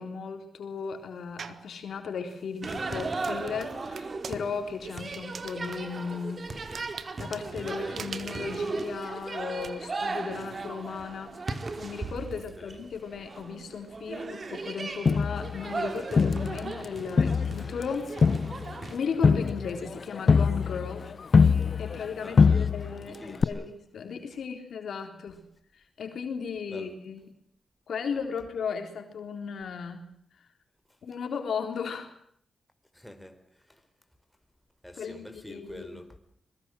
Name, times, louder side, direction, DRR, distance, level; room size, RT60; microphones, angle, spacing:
voice 1, 0.0-6.8 7.2-18.1 18.9-21.0 21.3-25.4 25.7-27.2 27.9-30.0 30.4-30.5 31.0-32.1 35.0-35.9, left 5 dB, 75° left, 3.8 m, -36 dB
sound 1, 1.4-1.7 2.3-9.7, right 6 dB, 65° right, 1.5 m, -45 dB
sound 2, 2.6-19.0, right 3 dB, 45° right, 3.0 m, -37 dB
voice 2, 12.3-12.8 22.2-22.8 23.0-23.8 26.7-27.0 30.9-31.0 32.9-33.9 34.8-36.2, left 1 dB, 5° left, 4.3 m, -47 dB
Crowd, 15.1-16.9 17.2-22.1 22.4-23.0 23.4-23.5, left 5 dB, 55° left, 1.0 m, -23 dB
24.5 x 21.0 x 7.8 m
cardioid pair, 65°, 0 cm